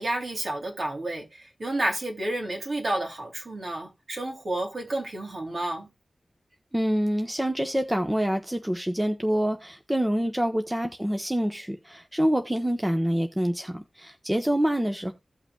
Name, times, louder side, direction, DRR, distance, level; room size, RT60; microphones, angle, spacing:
voice 1, 0.0-5.9, right 1 dB, 55° right, 3.0 m, -30 dB
voice 2, 6.7-15.1, equal, 10° right, 1.0 m, -26 dB
16.0 x 5.9 x 2.3 m
wide cardioid pair, 90°, 0 cm